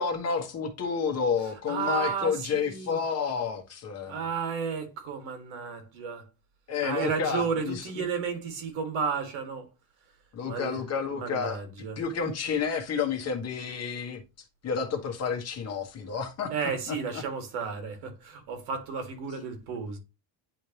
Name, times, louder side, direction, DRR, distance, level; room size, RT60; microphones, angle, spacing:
voice 1, 0.0-4.2 6.7-8.0 10.3-11.6 12.0-14.2 14.6-16.5 16.9-17.2, left 6 dB, 35° left, 1.3 m, -30 dB
voice 2, 1.7-3.0 4.1-6.3 6.8-9.7 10.4-10.8 11.1-12.0 16.5-20.0, right 6 dB, 90° right, 2.0 m, -33 dB
9.9 x 3.3 x 2.9 m
cardioid pair, 165°, 46 cm